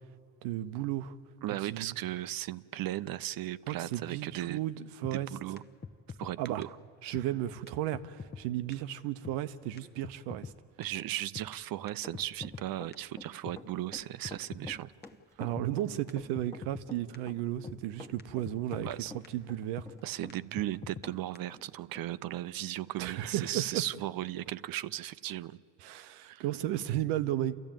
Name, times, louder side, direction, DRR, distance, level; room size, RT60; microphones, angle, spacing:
voice 1, 0.4-1.1 1.6-2.0 3.7-5.3 6.4-6.7 7.0-10.5 15.4-18.9 19.3-19.9 23.0-23.8 25.8-27.5, right 13 dB, 85° right, 0.9 m, -34 dB
voice 2, 1.4-4.6 5.1-5.6 6.2-6.7 10.8-14.9 18.8-19.1 20.0-25.6 26.2-26.4, right 14 dB, 60° right, 0.6 m, -36 dB
sound 1, 5.0-5.2 5.6-5.7 5.8-6.3 6.6-6.7 7.1-7.3 7.7-7.8 7.9-8.4 8.7-8.8 9.2-9.4 9.8-9.9 10.0-10.5 10.8-10.9 11.3-11.5 11.9-12.7 12.9-13.0 13.5-13.6 14.0-14.1 14.2-14.8 15.0-15.1 15.6-15.7 16.1-16.2 16.3-16.9 17.1-17.2 17.7-17.8 18.2-18.3 18.5-19.0 19.2-19.3 19.8-19.9 20.3-20.4 20.6-21.1 21.3-21.4, left 5 dB, 25° left, 0.9 m, -43 dB
Run, 12.0-21.2 21.5-21.6 21.9-22.0, left 2 dB, 5° left, 1.4 m, -48 dB
28.5 x 14.0 x 9.0 m
supercardioid pair, 75°, 40 cm